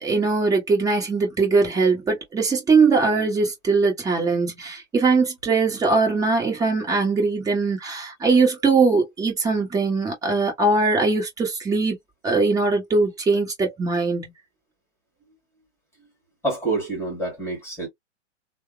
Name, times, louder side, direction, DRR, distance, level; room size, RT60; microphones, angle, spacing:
voice 1, 0.0-12.0 12.2-14.3, right 4 dB, 10° right, 1.0 m, -21 dB
voice 2, 16.4-17.9, right 2 dB, 5° left, 1.4 m, -27 dB
3.3 x 2.0 x 2.2 m
hypercardioid pair, 125°, 37 cm